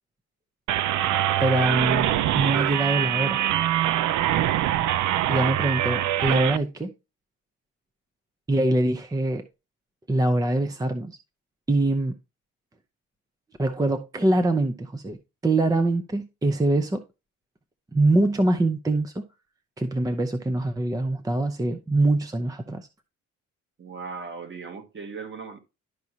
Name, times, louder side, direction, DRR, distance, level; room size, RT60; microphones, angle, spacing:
sound 1, 0.7-6.6, right 12 dB, 75° right, 0.5 m, -24 dB
voice 1, 1.4-3.4 5.3-6.9 8.5-9.4 10.1-11.2 11.7-12.2 13.6-15.2 15.4-17.0 17.9-19.2 19.8-22.9, right 2 dB, 10° right, 0.6 m, -24 dB
voice 2, 23.8-25.6, right 5 dB, 40° right, 1.5 m, -37 dB
12.0 x 4.7 x 2.8 m
cardioid pair, 90°, 30 cm